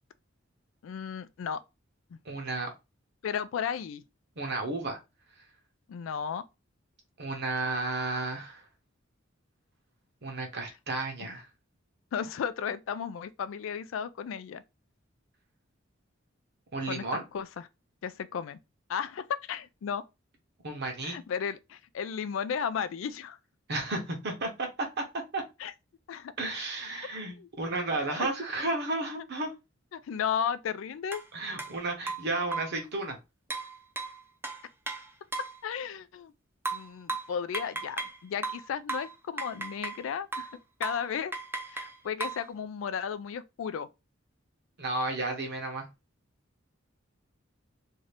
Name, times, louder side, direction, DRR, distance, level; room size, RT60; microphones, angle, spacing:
voice 1, 0.8-1.6 2.1-2.2 3.2-4.0 5.9-6.4 11.2-11.3 12.1-14.6 16.9-17.7 18.0-18.6 18.9-20.0 21.0-23.4 25.6-25.7 26.1-26.3 27.4-27.5 27.9-28.3 29.9-31.2 35.6-36.3 36.7-40.5 40.8-41.4 41.7-43.9, left 7 dB, 70° left, 0.3 m, -34 dB
voice 2, 2.3-2.7 4.4-5.0 7.2-8.6 10.2-11.5 16.7-17.2 20.6-21.2 23.7-24.9 25.3-25.4 26.4-29.5 31.3-33.2 44.8-45.9, right 2 dB, 55° right, 1.0 m, -32 dB
sound 1, 31.1-31.2 31.6-31.7 32.1-32.8 33.5-35.6 36.7-38.2 38.4-40.0 40.3-40.6 40.8-41.1 41.3-42.5, right 3 dB, 10° right, 0.5 m, -36 dB
2.7 x 2.5 x 3.2 m
head